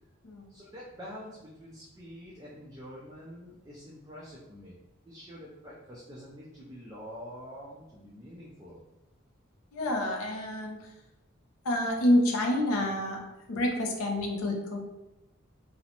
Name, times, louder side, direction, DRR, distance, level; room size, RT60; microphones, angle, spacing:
voice 1, 0.5-4.8 5.0-8.8, equal, 15° right, -6 dB, 0.3 m, -46 dB
voice 2, 9.7-10.9 11.6-13.2 13.5-14.8, left 1 dB, 75° left, 2 dB, 0.5 m, -28 dB
2.5 x 2.0 x 2.8 m, 0.95 s
head